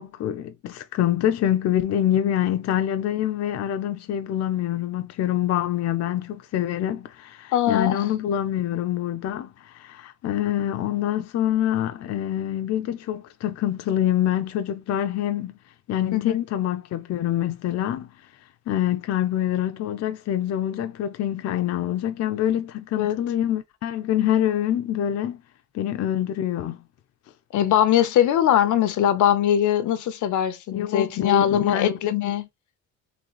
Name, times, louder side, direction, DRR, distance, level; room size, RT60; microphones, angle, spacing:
voice 1, 0.0-15.5 15.9-18.1 18.7-25.4 25.7-26.8 30.7-32.0, left 11 dB, 60° left, 0.5 m, -25 dB
voice 2, 7.5-8.0 16.1-16.4 23.0-23.2 27.5-32.5, left 10 dB, 85° left, 0.8 m, -21 dB
3.9 x 3.2 x 3.0 m
wide cardioid pair, 175°, 29 cm